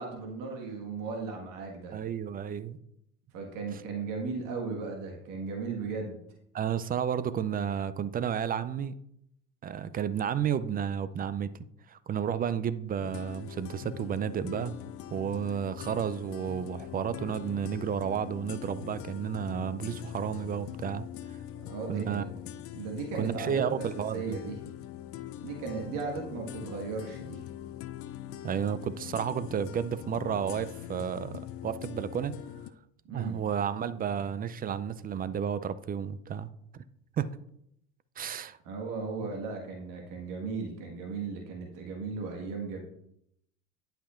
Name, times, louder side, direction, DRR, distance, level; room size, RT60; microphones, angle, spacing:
voice 1, 0.0-2.0 3.3-6.2 21.6-22.3 22.7-23.8 24.1-24.6 25.4-27.4 33.1-33.4 38.6-42.8, right 4 dB, 55° right, 1 dB, 1.6 m, -36 dB
voice 2, 1.9-2.8 3.7-3.8 6.5-8.9 9.6-11.5 11.9-14.8 15.1-21.4 21.9-22.2 23.1-24.4 28.4-32.3 33.1-36.8 37.2-37.3 38.2-38.6, right 8 dB, 25° right, 15 dB, 0.4 m, -32 dB
sound 1, 13.0-32.7, left 12 dB, 40° left, 0.5 m, -42 dB
11.0 x 5.7 x 2.5 m, 0.75 s
hypercardioid pair, 75°, 37 cm